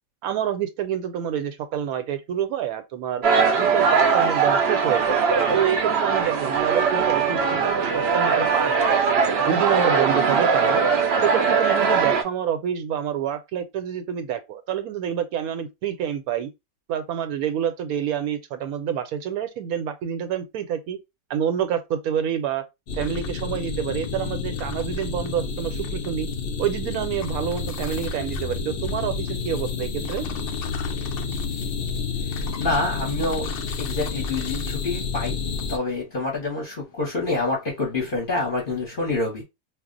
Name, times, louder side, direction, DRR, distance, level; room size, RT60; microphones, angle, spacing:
voice 1, 0.2-3.2 3.6-5.2 5.5-9.0 9.4-10.8 11.2-16.5 16.9-21.0 21.3-22.6 23.0-26.3 26.6-30.3, right 9 dB, 80° right, 1.1 m, -27 dB
sound 1, 3.2-12.2, right 5 dB, 60° right, 0.7 m, -20 dB
sound 2, 22.9-35.8, left 4 dB, 75° left, 0.5 m, -30 dB
voice 2, 32.3-33.5 33.8-35.4 35.7-39.4, left 2 dB, 45° left, 0.9 m, -27 dB
2.4 x 2.0 x 3.6 m
omnidirectional pair, 1.5 m